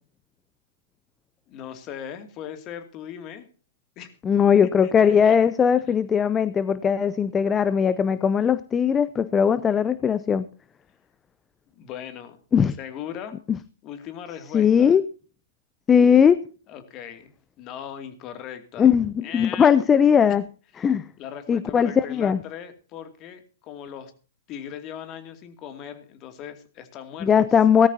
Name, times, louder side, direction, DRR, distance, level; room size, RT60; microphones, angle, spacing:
voice 1, 1.5-3.5 4.0-4.1 4.8-5.4 5.9-6.0 11.8-12.4 12.8-13.4 13.8-15.0 16.7-18.9 19.2-19.7 21.2-24.1 24.5-27.3, left 9 dB, 35° left, 8 dB, 2.5 m, -39 dB
voice 2, 4.2-10.5 12.5-12.8 14.5-15.0 15.9-16.4 18.8-20.4 20.8-21.0 21.5-22.4 27.2-27.9, left 7 dB, 20° left, 16 dB, 0.6 m, -19 dB
17.5 x 13.5 x 2.8 m, 0.37 s
hypercardioid pair, 120°, 0 cm